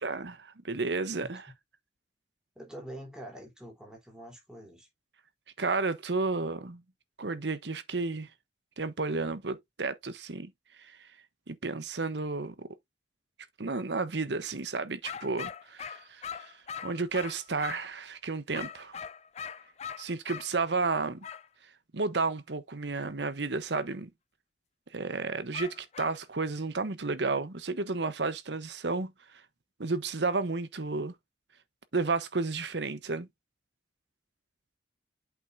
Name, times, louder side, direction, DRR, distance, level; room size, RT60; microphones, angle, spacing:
voice 1, 0.0-1.4 5.6-6.8 7.2-8.3 8.8-10.5 10.8-11.1 11.5-12.7 13.6-16.5 16.8-19.0 20.0-21.3 21.9-24.1 24.9-29.1 29.8-31.1 31.9-33.3, right 3 dB, 70° right, 1.0 m, -32 dB
voice 2, 2.6-4.9, right 1 dB, 5° right, 3.8 m, -45 dB
sound 1, 15.0-17.9 18.5-20.5 21.2-21.5 25.5-26.2, left 7 dB, 40° left, 0.4 m, -41 dB
8.2 x 6.0 x 2.7 m
head